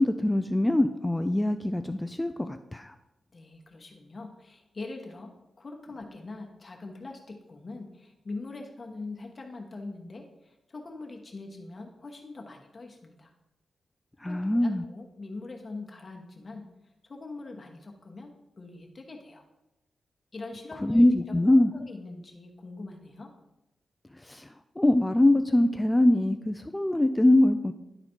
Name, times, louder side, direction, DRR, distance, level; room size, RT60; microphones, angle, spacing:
voice 1, 0.0-2.9 14.2-14.8 20.8-21.7 24.2-24.5 24.8-27.7, left 1 dB, 10° left, 8 dB, 0.3 m, -23 dB
voice 2, 3.3-13.3 14.2-16.7 17.0-19.4 20.3-23.3, left 3 dB, 40° left, 1 dB, 1.1 m, -43 dB
11.0 x 4.1 x 4.4 m, 0.93 s
cardioid pair, 90°, 0 cm